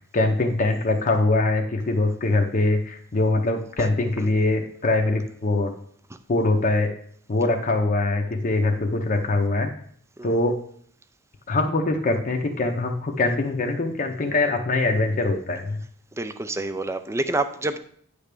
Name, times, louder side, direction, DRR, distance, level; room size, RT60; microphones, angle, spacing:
voice 1, 0.1-5.7 6.3-6.9 7.3-9.7 10.2-10.5 11.5-15.8, left 2 dB, 40° left, 2 dB, 0.7 m, -23 dB
voice 2, 16.2-17.8, right 2 dB, 15° right, 10 dB, 0.4 m, -27 dB
9.5 x 3.4 x 6.7 m, 0.62 s
head